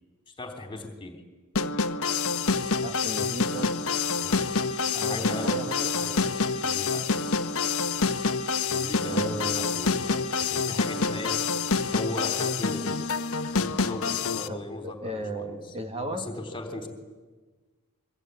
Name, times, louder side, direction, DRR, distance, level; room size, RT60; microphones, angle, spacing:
voice 1, 0.4-1.2 4.2-4.6 5.0-5.5 5.9-7.1 8.7-11.4 11.9-13.0 13.9-15.8 16.1-16.9, left 2 dB, 20° left, 6 dB, 3.6 m, -38 dB
sound 1, 1.5-14.5, left 4 dB, 65° left, 1.2 m, -27 dB
voice 2, 2.8-3.7 4.9-6.0 9.0-9.8 14.5-16.3, right 1 dB, 30° right, 5 dB, 2.1 m, -35 dB
24.5 x 24.0 x 9.5 m, 1.3 s
head